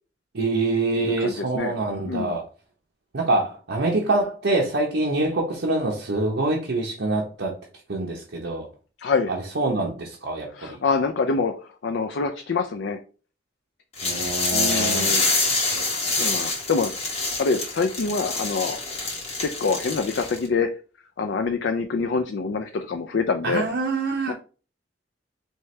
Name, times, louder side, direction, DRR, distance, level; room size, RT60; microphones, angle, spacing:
voice 1, 0.3-2.4 3.1-7.6 7.9-8.7 9.3-10.8 14.0-15.1 23.4-24.3, right 2 dB, 80° right, 0.8 m, -25 dB
voice 2, 1.0-1.7 2.0-2.4 9.0-9.3 10.5-11.5 11.8-13.0 14.5-15.2 15.7-15.9 16.2-17.0 17.4-18.8 19.4-20.7 21.2-23.7 24.3-24.4, left 4 dB, 80° left, 0.4 m, -25 dB
sound 1, 14.0-20.5, left 3 dB, 35° left, 1.5 m, -26 dB
4.5 x 2.9 x 3.2 m
head